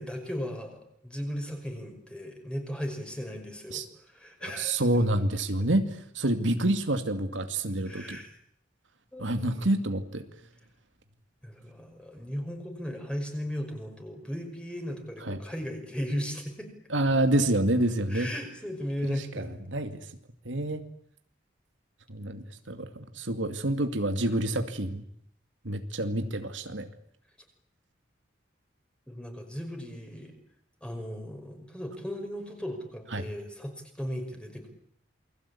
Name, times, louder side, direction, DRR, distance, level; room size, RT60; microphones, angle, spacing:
voice 1, 0.0-4.8 5.6-5.7 7.9-8.3 9.1-9.7 11.4-16.7 18.1-19.6 29.1-30.3 30.8-34.7, equal, 5° left, 4 dB, 5.6 m, -36 dB
voice 2, 4.6-5.9 6.1-8.2 9.2-10.2 15.2-15.4 16.9-18.3 19.0-20.0 20.4-20.8 22.1-25.0 25.6-26.9 33.1-33.3, right 1 dB, 90° right, 7 dB, 2.4 m, -28 dB
28.0 x 21.5 x 8.6 m, 0.68 s
head